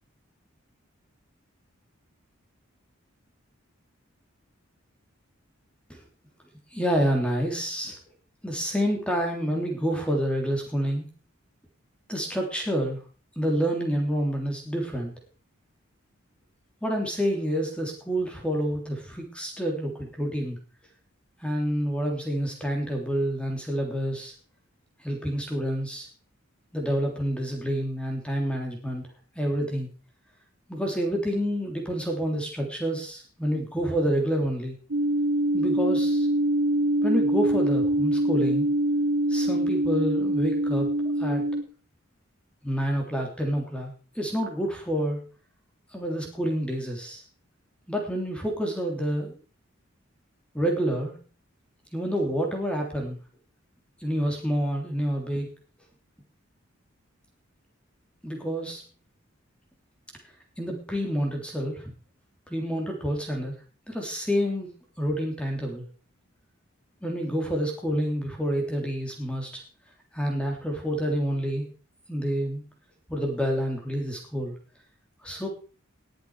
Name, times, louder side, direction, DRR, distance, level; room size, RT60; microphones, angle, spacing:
voice 1, 6.7-8.0 8.4-11.1 12.1-13.0 13.4-15.1 16.8-20.6 21.4-24.3 25.0-26.1 26.7-29.0 29.3-29.9 30.7-34.8 35.5-36.3 37.0-38.7 39.3-40.9 41.2-41.4 42.6-45.2 45.9-47.2 47.9-49.4 50.5-51.2 51.9-53.2 54.0-55.5 58.2-58.8 60.6-61.9 62.5-63.5 63.9-65.9 67.0-69.6 70.1-71.6 72.1-72.6 73.1-74.5 75.2-75.5, equal, 5° left, 1 dB, 3.2 m, -28 dB
sound 1, 34.9-41.6, right 1 dB, 90° right, 1.7 m, -24 dB
20.0 x 8.4 x 4.9 m, 0.38 s
head